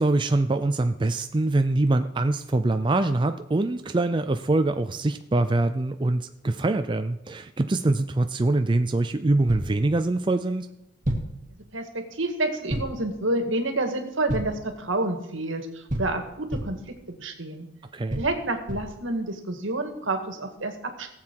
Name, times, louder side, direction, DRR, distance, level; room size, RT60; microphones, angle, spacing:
voice 1, 0.0-10.7 17.9-18.2, right 2 dB, 25° right, 8 dB, 0.5 m, -24 dB
sound 1, 9.5-9.8 11.0-11.4 12.7-13.1 14.3-14.7 15.9-16.9 18.1-19.0, right 1 dB, 40° right, 2.1 m, -31 dB
voice 2, 11.7-17.7 18.1-21.1, right 2 dB, 75° right, 6 dB, 1.8 m, -29 dB
18.0 x 7.7 x 4.6 m, 0.90 s
head